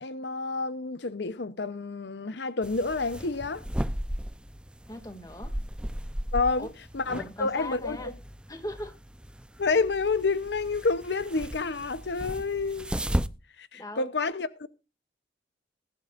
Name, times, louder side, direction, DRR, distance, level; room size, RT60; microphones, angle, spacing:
voice 1, 0.0-3.6 6.3-6.7 6.9-8.1 9.6-12.9 13.6-14.7, left 3 dB, 80° left, 0.8 m, -29 dB
sound 1, 2.6-13.3, equal, 5° right, 0.6 m, -36 dB
voice 2, 4.9-5.6 6.6-6.7 7.1-8.2 8.5-8.9 13.7-14.1, left 1 dB, 20° left, 2.3 m, -39 dB
20.5 x 11.0 x 2.5 m
head